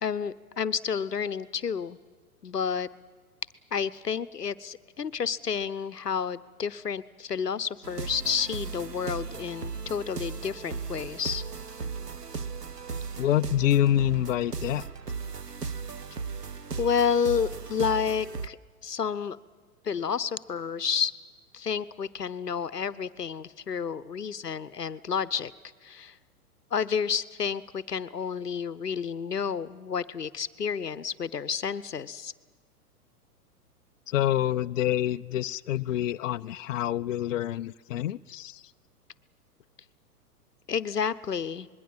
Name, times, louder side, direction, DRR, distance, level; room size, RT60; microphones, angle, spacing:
voice 1, 0.0-2.0 2.4-2.9 3.7-11.4 16.8-18.6 18.8-19.4 19.8-21.1 21.5-25.5 25.8-26.1 26.7-32.3 40.7-41.7, left 6 dB, 85° left, 17 dB, 0.9 m, -30 dB
sound 1, 7.8-18.5, right 5 dB, 90° right, 1.0 m, -36 dB
voice 2, 13.2-14.8 34.1-38.6, left 12 dB, 55° left, 10 dB, 0.6 m, -27 dB
25.5 x 21.0 x 7.3 m, 1.5 s
figure-of-eight pair, 110°, 46 cm